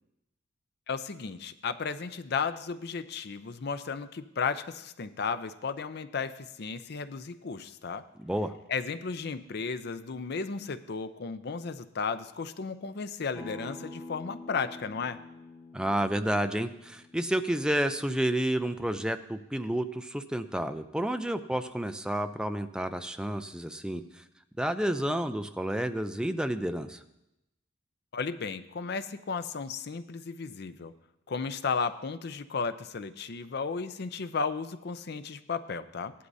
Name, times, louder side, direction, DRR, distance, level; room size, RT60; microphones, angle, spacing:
voice 1, 0.9-8.0 8.7-15.2 28.1-30.9 31.3-36.1, left 5 dB, 60° left, 12 dB, 0.5 m, -34 dB
voice 2, 8.2-8.5 15.7-24.2 24.6-27.0, right 1 dB, 5° right, 8 dB, 0.5 m, -30 dB
Acoustic guitar, 13.3-18.5, left 2 dB, 10° left, 3.5 m, -48 dB
16.5 x 11.5 x 2.7 m, 0.89 s
head